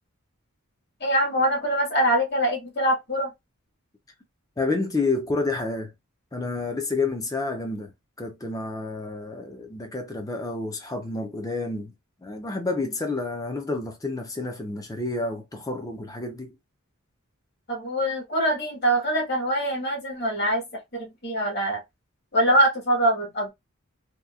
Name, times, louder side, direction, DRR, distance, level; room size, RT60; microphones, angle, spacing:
voice 1, 1.0-3.3 17.7-21.8 22.3-23.5, right 1 dB, 50° left, 1.5 m, -24 dB
voice 2, 4.6-5.9 6.3-7.9 8.2-11.9 12.2-16.6, left 3 dB, 15° left, 0.5 m, -29 dB
2.9 x 2.3 x 2.3 m
head